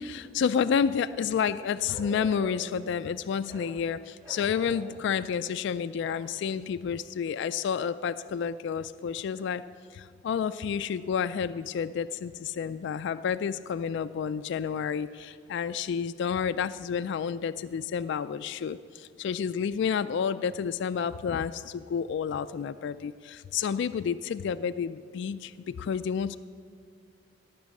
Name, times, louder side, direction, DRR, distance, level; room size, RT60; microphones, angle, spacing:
voice 1, 0.0-9.6 9.9-26.4, left 7 dB, 65° left, 12 dB, 0.3 m, -30 dB
Bark, 1.9-2.8 3.5-3.7 4.2-5.0 6.0-6.3, equal, 20° right, 3.3 m, -44 dB
17.0 x 6.1 x 8.2 m, 2.4 s
head